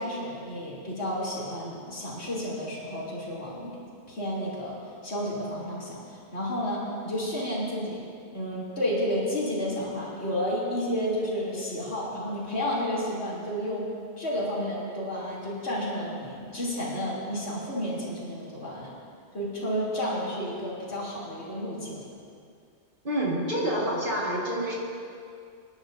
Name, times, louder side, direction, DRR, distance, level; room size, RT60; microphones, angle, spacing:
voice 1, 0.0-3.8 4.1-8.0 8.3-13.9 14.2-18.9 19.3-22.0, equal, 80° left, -6 dB, 3.5 m, -31 dB
voice 2, 23.0-24.7, equal, 50° right, -5 dB, 1.9 m, -27 dB
27.5 x 11.0 x 2.7 m, 2.3 s
omnidirectional pair, 1.1 m